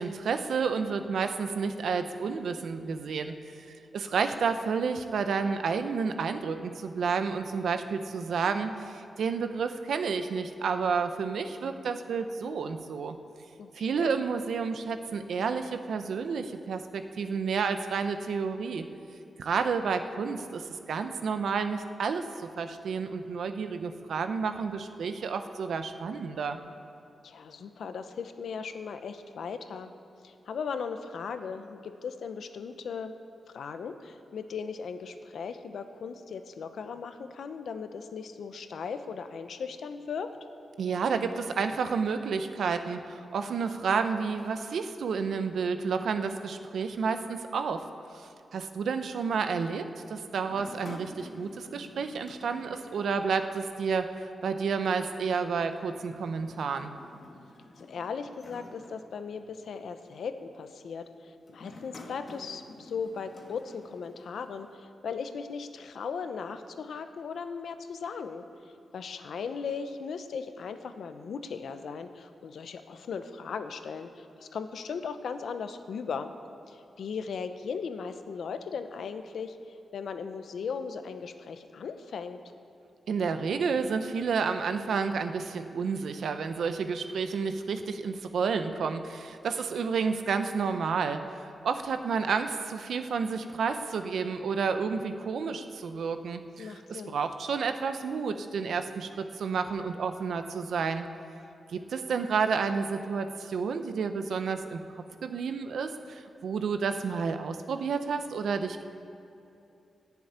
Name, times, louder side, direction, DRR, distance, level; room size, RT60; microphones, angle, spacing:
voice 1, 0.0-3.4 3.7-13.1 13.7-18.8 19.4-26.6 40.8-47.8 48.1-56.9 83.1-101.0 101.7-104.8 105.2-108.8, right 5 dB, 75° right, 8 dB, 0.9 m, -30 dB
voice 2, 13.6-14.1 27.2-29.9 30.2-33.1 33.5-40.3 57.8-68.4 68.9-76.3 76.7-82.4 96.6-97.2, left 6 dB, 75° left, 9 dB, 0.8 m, -38 dB
sound 1, 50.4-53.8 54.1-54.2 55.4-59.6 60.2-60.5 61.5-64.8, left 2 dB, 40° left, 1.6 m, -50 dB
14.5 x 7.1 x 9.6 m, 2.7 s
wide cardioid pair, 140°, 0 cm